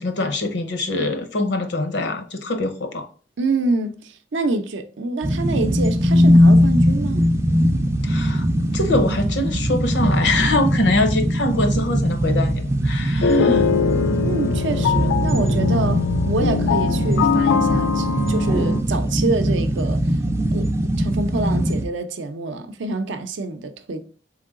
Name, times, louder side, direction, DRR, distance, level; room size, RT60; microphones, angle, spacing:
voice 1, 0.0-3.1 8.0-8.4 8.7-13.6, left 2 dB, 70° left, 0.7 m, -23 dB
voice 2, 3.4-7.2 13.3-13.8 14.2-20.0 20.5-24.1, right 3 dB, 75° right, 0.5 m, -26 dB
sound 1, 5.2-21.8, equal, 15° right, 0.3 m, -20 dB
sound 2, 13.2-18.8, left 7 dB, 90° left, 0.3 m, -22 dB
3.8 x 3.2 x 3.6 m
head